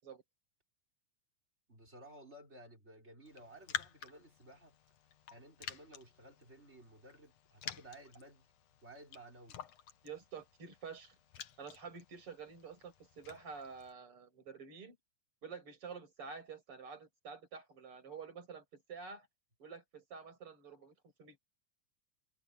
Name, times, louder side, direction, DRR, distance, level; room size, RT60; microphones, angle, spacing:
voice 1, 1.7-4.8 5.3-8.5 8.8-9.6, right 1 dB, 20° right, 4.9 m, -56 dB
Raindrop, 3.3-13.9, left 9 dB, 60° left, 2.3 m, -49 dB
voice 2, 10.0-11.2 11.6-15.0 15.4-19.3 19.6-20.9 21.2-21.4, right 6 dB, 40° right, 8.1 m, -49 dB
omnidirectional pair, 3.7 m